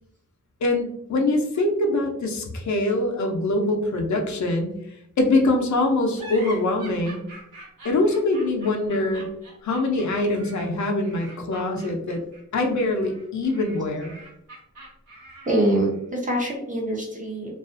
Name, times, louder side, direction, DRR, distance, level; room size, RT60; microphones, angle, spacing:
voice 1, 0.6-4.7 5.2-7.2 7.8-9.3 9.6-12.2 12.5-14.1, left 2 dB, 65° left, 2 dB, 0.5 m, -23 dB
sound 1, 6.1-16.0, right 2 dB, 85° right, 1.1 m, -44 dB
voice 2, 15.5-17.6, right 1 dB, 25° right, -2 dB, 0.7 m, -25 dB
2.4 x 2.3 x 2.4 m, 0.76 s
wide cardioid pair, 120°, 31 cm